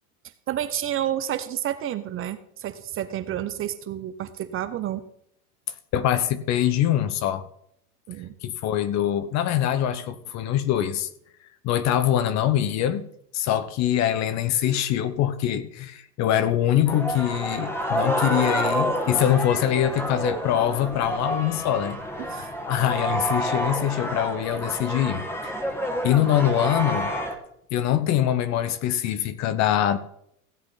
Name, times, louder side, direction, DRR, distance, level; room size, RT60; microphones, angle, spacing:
voice 1, 0.5-5.0 8.1-8.3 22.2-22.5, right 11 dB, 30° right, 0.7 m, -30 dB
voice 2, 5.9-7.5 8.4-11.1 11.6-13.1 13.3-25.6 26.0-27.1 27.7-30.0, left 11 dB, 35° left, 0.9 m, -24 dB
sound 1, 16.9-27.3, equal, 5° left, 1.5 m, -28 dB
16.0 x 8.0 x 4.0 m
hypercardioid pair, 120°, 45 cm